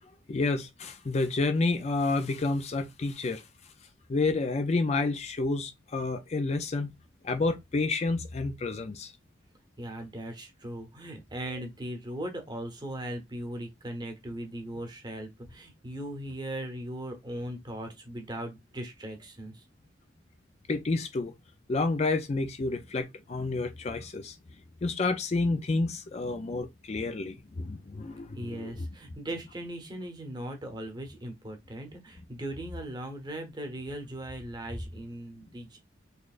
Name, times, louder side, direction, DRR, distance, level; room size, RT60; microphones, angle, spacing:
voice 1, 0.3-3.4 4.1-6.9 7.2-9.1 20.7-21.3 21.7-24.4 24.8-28.9, left 3 dB, 35° left, 0.4 m, -29 dB
voice 2, 9.8-19.6 28.4-35.8, right 1 dB, 20° right, 0.9 m, -38 dB
4.2 x 3.2 x 2.4 m
head